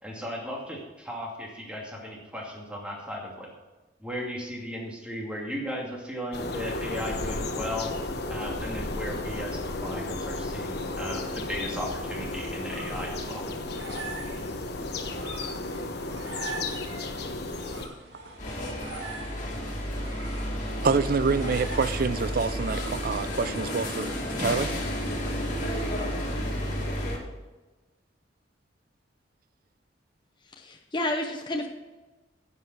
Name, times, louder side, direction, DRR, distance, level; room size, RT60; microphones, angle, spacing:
voice 1, 0.0-3.5 4.0-7.9 8.3-13.4 19.0-19.1, equal, 5° right, 2.5 m, -36 dB
sound 1, 6.3-17.9, left 2 dB, 60° left, 1.1 m, -33 dB
sound 2, 12.2-23.4, right 2 dB, 85° right, 2.8 m, -43 dB
sound 3, 18.4-27.2, equal, 45° left, 2.5 m, -31 dB
voice 2, 20.8-24.7, right 5 dB, 55° right, 0.5 m, -27 dB
voice 3, 30.6-31.7, left 1 dB, 25° left, 0.8 m, -30 dB
10.5 x 8.2 x 6.2 m
head